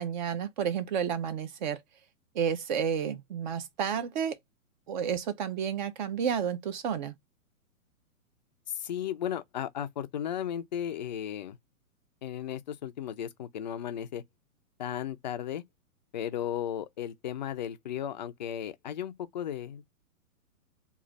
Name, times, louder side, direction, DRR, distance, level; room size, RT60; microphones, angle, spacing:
voice 1, 0.0-1.8 2.3-4.4 4.9-7.2, right 7 dB, 35° right, 0.6 m, -31 dB
voice 2, 8.7-11.6 12.2-14.2 14.8-15.6 16.1-19.8, left 10 dB, 35° left, 0.4 m, -35 dB
3.1 x 2.4 x 3.9 m
hypercardioid pair, 140°, 43 cm